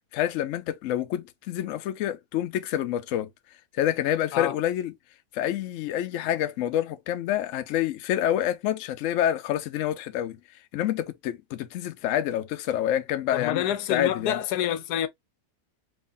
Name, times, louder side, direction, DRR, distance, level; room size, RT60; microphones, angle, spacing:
voice 1, 0.1-3.3 3.7-4.9 5.3-10.4 10.7-13.6 13.9-14.4, left 11 dB, 70° left, 0.8 m, -27 dB
voice 2, 13.3-15.1, left 10 dB, 85° left, 1.1 m, -27 dB
3.8 x 2.9 x 2.5 m
omnidirectional pair, 1.7 m